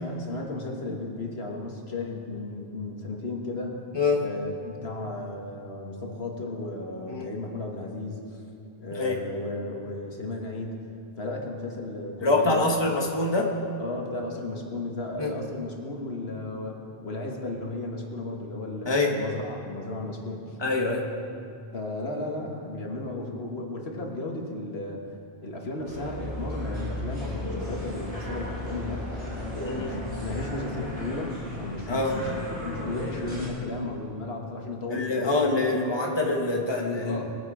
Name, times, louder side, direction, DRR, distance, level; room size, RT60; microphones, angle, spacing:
voice 1, 0.0-3.8 4.2-8.4 8.8-10.8 11.2-12.8 13.8-20.6 21.7-29.2 29.5-35.7 37.0-37.3, left 2 dB, 75° left, 0 dB, 1.8 m, -35 dB
voice 2, 3.9-4.3 7.1-7.3 8.9-9.2 12.2-13.5 15.2-15.3 18.9-19.1 20.6-21.1 29.6-29.9 31.9-32.2 34.9-37.2, left 3 dB, 25° left, 0 dB, 1.4 m, -25 dB
sound 1, 25.8-33.5, left 1 dB, 40° right, 4.3 m, -35 dB
22.0 x 7.6 x 4.9 m, 2.5 s
omnidirectional pair, 1.1 m